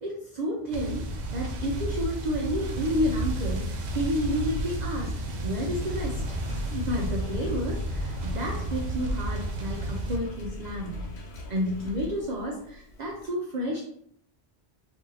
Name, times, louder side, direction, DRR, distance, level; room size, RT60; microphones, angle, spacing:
voice 1, 0.0-11.0 11.5-13.8, equal, 50° right, -2 dB, 0.6 m, -31 dB
sound 1, 0.7-10.2, right 1 dB, 80° right, 0.9 m, -32 dB
Engine, 2.4-13.3, equal, 85° left, 1.0 m, -41 dB
2.7 x 2.7 x 3.8 m, 0.68 s
omnidirectional pair, 1.1 m